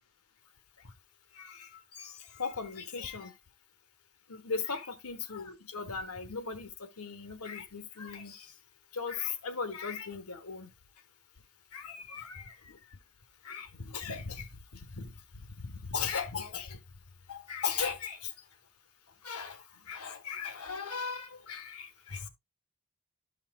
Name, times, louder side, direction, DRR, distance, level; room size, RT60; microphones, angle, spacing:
voice 1, 1.3-3.4 4.3-8.6 8.9-10.7 11.7-13.0 13.4-16.8 17.3-18.5 19.2-22.3, left 5 dB, 85° left, 1.1 m, -38 dB
12.5 x 5.7 x 2.2 m
head